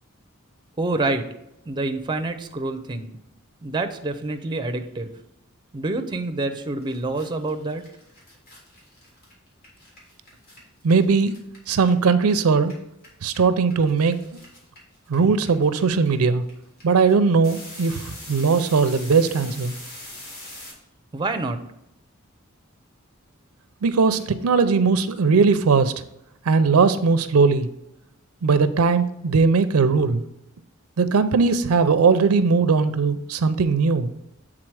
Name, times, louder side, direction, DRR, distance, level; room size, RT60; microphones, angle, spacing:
voice 1, 0.8-1.3 1.7-3.2 3.6-5.1 5.7-7.8 21.1-21.6, right 2 dB, 20° right, 7 dB, 0.5 m, -27 dB
sound 1, 6.5-6.6 6.8-12.3 12.6-20.7, left 1 dB, 45° left, 2.3 m, -43 dB
voice 2, 10.8-11.3 11.7-12.8 13.2-14.4 15.1-16.4 16.8-19.7 23.8-25.9 26.5-27.7 28.4-30.2 31.0-34.1, right 4 dB, 85° right, 12 dB, 0.5 m, -19 dB
7.7 x 3.7 x 4.7 m, 0.81 s
head